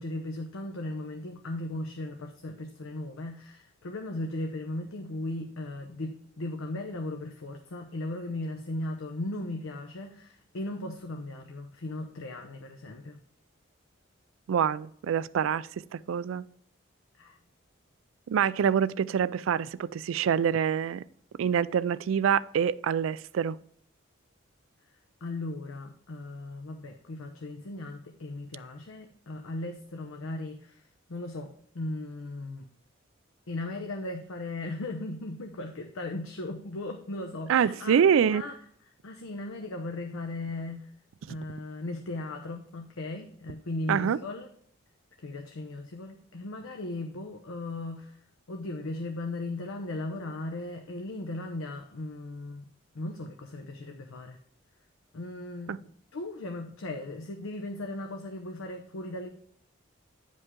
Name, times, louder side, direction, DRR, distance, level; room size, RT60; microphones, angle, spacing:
voice 1, 0.0-13.2 17.2-17.4 25.2-30.8 31.1-32.7 33.5-38.0 38.3-38.5 39.0-40.9 41.3-44.5 45.2-48.2 48.5-52.7 52.9-54.4 55.1-59.3, left 2 dB, 90° left, 0.7 m, -37 dB
voice 2, 14.5-16.4 18.3-21.0 21.4-23.6 37.5-38.4 41.3-41.4 43.9-44.2 55.7-55.8, right 8 dB, 80° right, 0.3 m, -26 dB
9.5 x 5.2 x 3.7 m
head